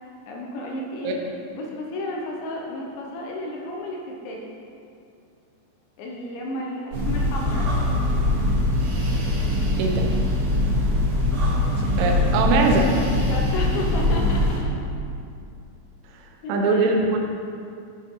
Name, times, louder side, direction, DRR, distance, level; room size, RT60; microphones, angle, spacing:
voice 1, 0.0-1.2 1.5-4.4 6.0-7.8 13.2-14.7 16.4-16.9, left 1 dB, 75° left, -1 dB, 2.9 m, -32 dB
sound 1, 6.9-14.6, left 1 dB, 50° right, 3.2 m, -22 dB
voice 2, 11.7-12.9 16.5-17.2, right 3 dB, 75° right, 1 dB, 3.1 m, -21 dB
11.0 x 6.0 x 3.8 m, 2.5 s
omnidirectional pair, 5.9 m